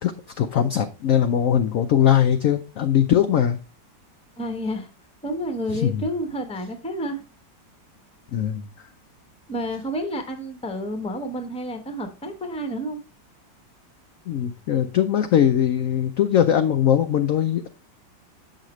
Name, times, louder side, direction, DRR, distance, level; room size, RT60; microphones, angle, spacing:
voice 1, 0.0-3.6 5.7-6.1 8.3-8.7 14.3-17.7, left 9 dB, 75° left, 0.7 m, -21 dB
voice 2, 4.4-4.9 5.2-7.2 9.5-13.0, equal, 5° left, 0.7 m, -30 dB
7.5 x 6.5 x 3.1 m
omnidirectional pair, 2.0 m